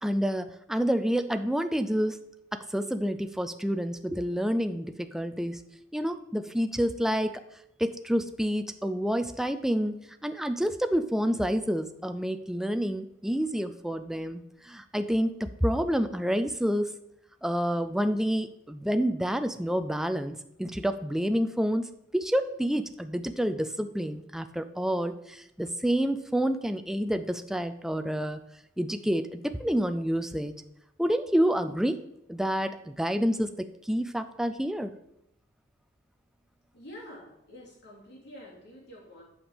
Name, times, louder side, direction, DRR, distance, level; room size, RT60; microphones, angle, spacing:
voice 1, 0.0-2.2 2.5-5.6 5.9-7.4 7.8-16.9 17.4-21.9 22.1-28.4 28.8-30.5 31.0-32.0 32.3-34.9, equal, ahead, 8 dB, 0.3 m, -28 dB
voice 2, 36.7-39.2, left 1 dB, 55° left, -4 dB, 3.1 m, -47 dB
8.7 x 5.2 x 5.0 m, 0.79 s
head